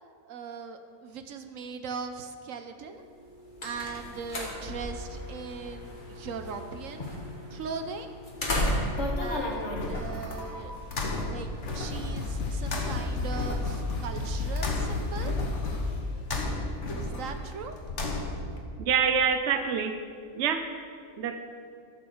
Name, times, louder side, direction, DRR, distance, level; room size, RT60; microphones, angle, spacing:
voice 1, 0.3-3.0 3.6-7.2 7.5-8.1 9.2-10.7 11.3-15.3 16.9-17.7, right 5 dB, 80° right, 7 dB, 1.1 m, -39 dB
sound 1, 3.1-10.6, left 1 dB, 40° left, 1.9 m, -35 dB
sound 2, 8.4-18.6, left 2 dB, 60° left, 1.7 m, -34 dB
sound 3, 10.1-10.8 11.5-11.6 11.9-16.1, left 3 dB, 85° left, 1.8 m, -32 dB
voice 2, 18.8-20.0 20.3-20.7 21.2-21.4, right 7 dB, 60° right, 7 dB, 1.0 m, -26 dB
13.0 x 7.1 x 7.0 m, 2.3 s
omnidirectional pair, 1.4 m